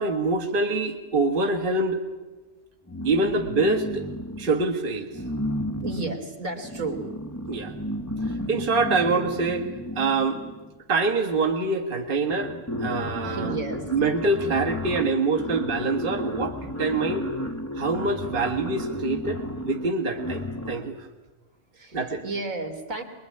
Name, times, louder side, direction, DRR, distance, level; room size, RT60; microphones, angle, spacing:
voice 1, 0.0-2.0 3.0-4.0 4.4-5.1 7.5-7.7 8.5-9.7 10.0-10.4 10.9-12.5 12.8-13.5 13.9-17.3 17.8-21.0 21.9-22.2, right 3 dB, 40° right, 3 dB, 1.7 m, -25 dB
sound 1, 2.9-4.7 5.1-10.8 11.7-11.8 12.1-21.0, left 1 dB, 15° left, 0.7 m, -33 dB
voice 2, 5.8-7.1 13.2-13.9 21.7-23.0, right 3 dB, 75° right, 4 dB, 3.5 m, -32 dB
23.5 x 22.0 x 9.7 m, 1.2 s
omnidirectional pair, 1.4 m